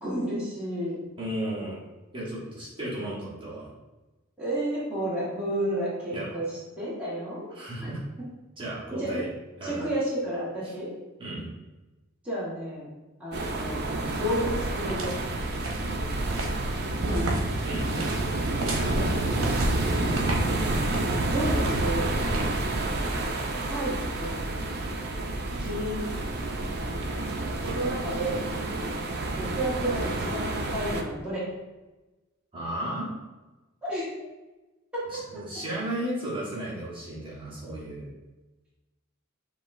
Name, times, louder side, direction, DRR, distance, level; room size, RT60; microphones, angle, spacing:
voice 1, 0.0-1.0 4.4-6.5 6.8-7.5 7.8-7.9 9.0-9.2 9.6-10.9 12.2-12.9 13.2-13.8 14.2-15.1 17.0-17.3 18.9-19.5 21.3-22.1 23.7-24.4 25.6-26.1 27.6-28.4 29.4-31.5 33.8-34.1 34.9-35.0, right 1 dB, 5° right, -10 dB, 1.2 m, -31 dB
voice 2, 1.2-1.8 2.1-3.7 6.1-6.3 7.5-8.0 8.6-9.3 9.6-9.8 10.6-10.7 11.2-11.5 17.6-17.9 32.5-33.1 35.1-38.1, right 1 dB, 25° right, -7 dB, 1.3 m, -34 dB
sound 1, 13.3-31.0, right 2 dB, 50° right, 0.5 m, -29 dB
sound 2, 14.7-23.7, right 2 dB, 80° right, 0.8 m, -37 dB
6.6 x 3.0 x 2.5 m, 1.1 s
head